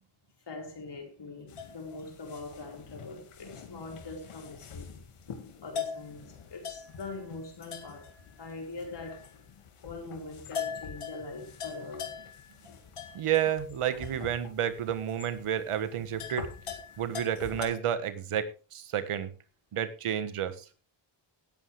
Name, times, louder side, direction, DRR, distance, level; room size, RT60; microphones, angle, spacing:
voice 1, 0.5-5.0 5.6-8.1 8.4-9.3 9.8-12.1, left 3 dB, 55° left, 4.6 m, -42 dB
sound 1, 1.5-17.7, left 7 dB, 85° left, 2.2 m, -43 dB
voice 2, 13.1-16.5 17.0-19.3 19.7-20.5, right 9 dB, 85° right, 1.5 m, -30 dB
18.0 x 8.2 x 3.4 m
cardioid pair, 75°, 50 cm